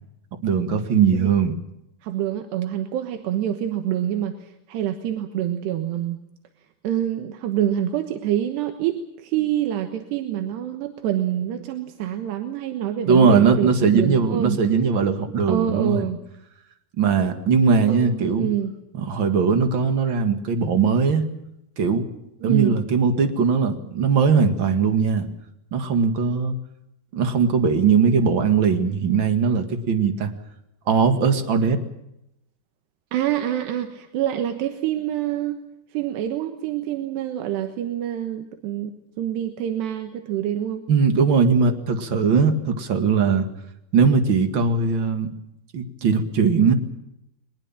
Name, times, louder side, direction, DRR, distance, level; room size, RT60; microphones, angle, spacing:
voice 1, 0.4-1.6 13.1-16.1 17.0-18.5 18.9-21.2 21.8-22.1 22.4-25.3 25.7-26.5 27.1-30.3 30.9-31.8 40.9-43.5 43.9-45.3 45.7-46.7, right 5 dB, 40° right, 7 dB, 1.8 m, -20 dB
voice 2, 2.0-6.2 6.8-14.6 15.5-16.2 17.9-18.7 22.4-22.8 33.1-35.6 35.9-38.9 39.2-40.8, right 11 dB, 85° right, 7 dB, 3.4 m, -26 dB
22.5 x 20.5 x 7.3 m, 0.83 s
omnidirectional pair, 4.8 m